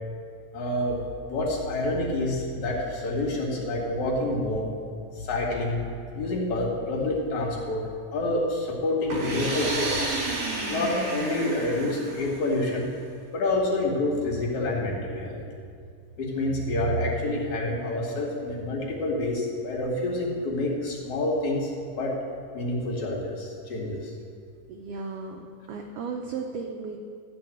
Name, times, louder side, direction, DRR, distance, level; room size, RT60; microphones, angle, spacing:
voice 1, 0.5-1.0 1.3-4.7 5.1-5.9 6.1-10.2 10.7-12.8 13.3-15.4 16.2-21.7 22.0-22.1 22.5-24.1, left 2 dB, 65° left, -3 dB, 3.4 m, -28 dB
sound 1, 9.1-12.8, right 3 dB, 40° right, 1.8 m, -31 dB
voice 2, 24.7-27.0, right 4 dB, 80° right, 2 dB, 1.3 m, -35 dB
13.5 x 4.6 x 8.6 m, 2.2 s
omnidirectional pair, 3.5 m